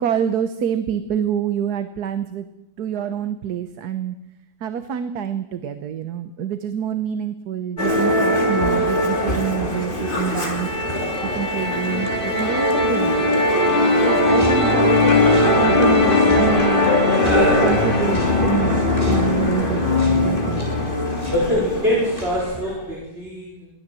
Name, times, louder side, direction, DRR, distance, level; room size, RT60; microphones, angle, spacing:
voice 1, 0.0-2.4 2.8-4.1 4.6-10.7 11.3-13.3 14.0-15.2 15.5-16.8 17.3-18.8 19.1-20.9, right 8 dB, 75° right, 10 dB, 1.5 m, -26 dB
Musical instrument, 7.8-22.5, left 2 dB, 30° left, 2.9 m, -19 dB
sound 1, 14.1-23.0, left 1 dB, 10° right, 6.7 m, -36 dB
voice 2, 21.3-23.7, left 1 dB, 35° right, -4 dB, 5.0 m, -23 dB
23.0 x 16.5 x 7.7 m, 0.93 s
omnidirectional pair, 1.7 m